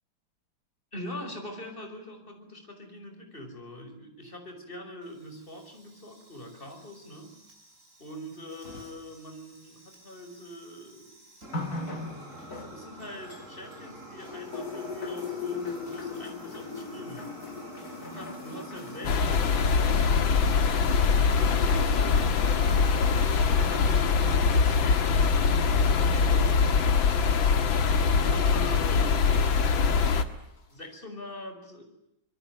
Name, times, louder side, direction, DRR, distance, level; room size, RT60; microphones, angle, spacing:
voice 1, 0.9-7.4 8.0-11.2 12.5-17.4 18.0-20.5 21.2-22.4 23.3-26.7 28.0-29.2 30.7-31.8, equal, 25° left, 6 dB, 5.9 m, -43 dB
Fire, 5.0-23.6, right 1 dB, 35° right, 8.3 m, -48 dB
sound 1, 11.5-13.9 14.2-28.9 29.8-29.9, left 3 dB, 45° left, 3.6 m, -41 dB
sound 2, 19.0-30.2, left 5 dB, 70° left, 2.4 m, -23 dB
26.5 x 22.0 x 9.5 m, 0.83 s
omnidirectional pair, 2.2 m